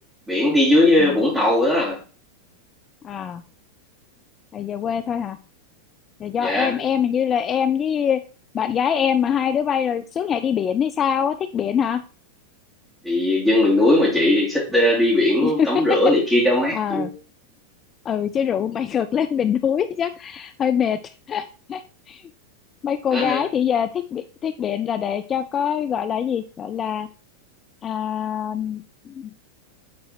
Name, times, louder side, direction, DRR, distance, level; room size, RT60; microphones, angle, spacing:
voice 1, 0.3-2.0 6.4-6.8 13.0-17.1 23.1-23.4, left 1 dB, 5° right, -7 dB, 2.7 m, -19 dB
voice 2, 3.0-3.4 4.5-5.4 6.2-8.2 8.5-12.0 15.4-15.8 16.7-17.1 18.1-21.0 21.3-21.8 22.1-22.2 22.8-27.1 27.8-29.3, left 8 dB, 25° left, 11 dB, 0.4 m, -24 dB
8.6 x 4.1 x 4.4 m, 0.36 s
figure-of-eight pair, 90°, 0 cm